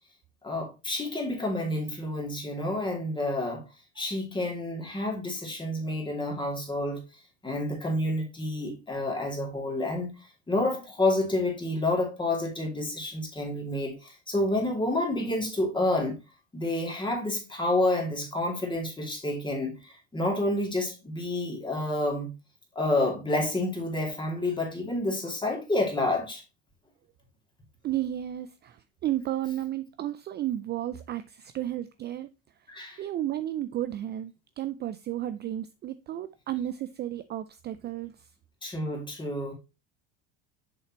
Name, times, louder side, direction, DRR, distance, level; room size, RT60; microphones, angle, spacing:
voice 1, 0.4-3.6 4.0-7.1 7.4-10.1 10.5-16.2 16.5-22.3 22.8-26.4 32.7-33.0 38.6-39.5, left 1 dB, 15° left, 2.5 m, -29 dB
voice 2, 27.8-32.3 33.0-38.3, right 12 dB, 30° right, 0.4 m, -33 dB
6.8 x 5.4 x 3.0 m
supercardioid pair, 115°, 34 cm